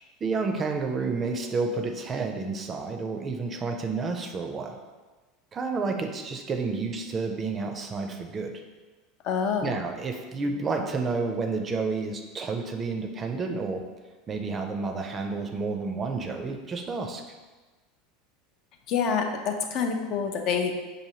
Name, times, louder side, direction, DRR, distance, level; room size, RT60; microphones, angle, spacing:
voice 1, 0.2-4.8 5.5-8.5 9.6-13.8 14.3-17.2, right 4 dB, 30° right, 4 dB, 0.5 m, -30 dB
voice 2, 9.2-9.8 18.9-20.7, left 6 dB, 55° left, 4 dB, 0.5 m, -27 dB
4.8 x 2.6 x 2.8 m, 1.3 s
hypercardioid pair, 80°, 0 cm